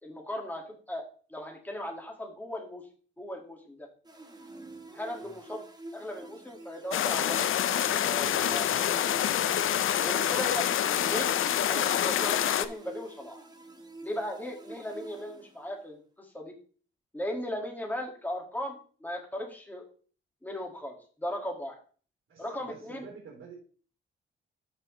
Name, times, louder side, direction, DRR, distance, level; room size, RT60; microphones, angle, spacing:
voice 1, 0.0-2.8 3.2-3.9 4.9-5.6 5.9-7.5 7.9-9.1 10.0-11.4 11.7-13.5 14.0-16.5 17.1-19.8 20.4-21.8 22.4-23.1, left 1 dB, 10° left, 1 dB, 2.0 m, -37 dB
sound 1, 4.0-15.9, right 2 dB, 20° right, 1.2 m, -48 dB
sound 2, 6.9-12.6, left 10 dB, 70° left, 0.6 m, -27 dB
voice 2, 22.3-23.5, right 5 dB, 80° right, -2 dB, 3.4 m, -49 dB
13.5 x 4.9 x 3.2 m, 0.42 s
wide cardioid pair, 130°, 21 cm